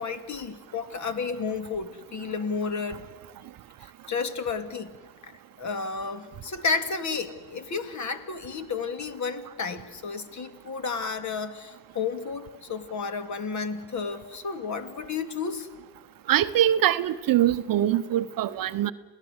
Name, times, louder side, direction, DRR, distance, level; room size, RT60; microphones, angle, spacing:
voice 1, 0.0-3.0 3.8-4.9 5.2-15.7, left 5 dB, 35° left, 10 dB, 2.4 m, -32 dB
voice 2, 16.3-18.9, right 12 dB, 45° right, 12 dB, 0.9 m, -23 dB
28.0 x 18.0 x 8.1 m, 1.2 s
supercardioid pair, 90°, 49 cm